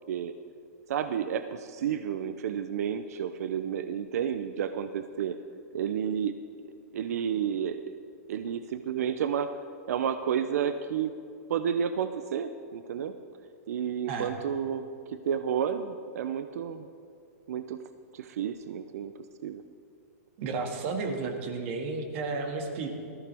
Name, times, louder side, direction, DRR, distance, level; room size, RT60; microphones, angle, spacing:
voice 1, 0.9-5.4 5.7-6.3 6.9-7.8 8.3-9.5 9.9-11.1 11.5-13.1 13.7-14.9 15.3-16.9 17.5-17.8 18.1-19.1 19.4-19.6, right 8 dB, 70° right, 10 dB, 0.6 m, -31 dB
voice 2, 20.4-22.9, right 4 dB, 50° right, 4 dB, 2.0 m, -32 dB
18.5 x 14.5 x 3.5 m, 2.4 s
hypercardioid pair, 140°, 9 cm